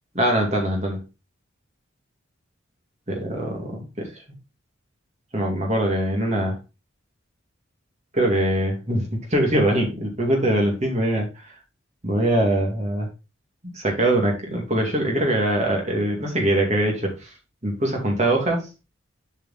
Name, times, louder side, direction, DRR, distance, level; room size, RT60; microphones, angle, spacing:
voice 1, 0.1-1.0 3.1-4.2 5.3-6.6 8.1-11.6 12.0-13.1 13.7-17.3 17.6-18.7, right 1 dB, 35° right, 0 dB, 2.4 m, -23 dB
7.4 x 5.5 x 4.0 m, 0.28 s
head